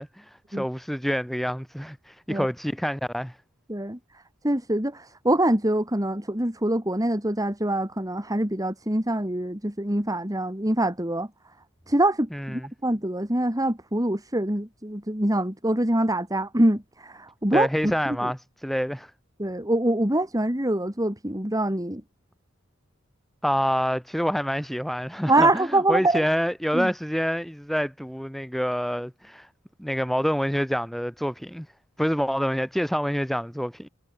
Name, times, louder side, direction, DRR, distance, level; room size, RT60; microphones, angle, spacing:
voice 1, 0.0-3.4 12.3-12.7 17.5-19.1 23.4-29.5 29.8-31.7 32.0-33.9, equal, ahead, 6.3 m, -27 dB
voice 2, 4.4-11.3 11.9-17.9 18.2-18.3 19.4-22.0 25.3-26.3 26.7-26.9, right 1 dB, 15° right, 4.3 m, -24 dB
head